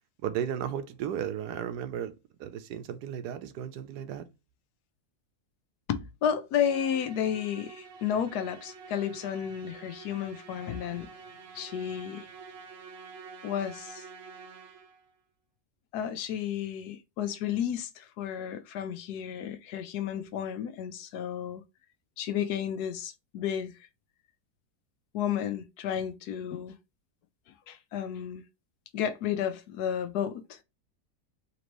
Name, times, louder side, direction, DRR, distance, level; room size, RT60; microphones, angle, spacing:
voice 1, 0.2-2.1 2.4-4.3, right 9 dB, 85° right, 1.2 m, -34 dB
voice 2, 5.9-11.1 11.5-12.3 13.4-14.0 15.9-21.6 22.2-23.7 25.1-26.7 27.7-28.4 28.9-30.6, left 9 dB, 80° left, 1.2 m, -32 dB
Musical instrument, 6.6-15.1, right 5 dB, 55° right, 0.7 m, -48 dB
4.2 x 3.0 x 3.0 m
omnidirectional pair, 1.7 m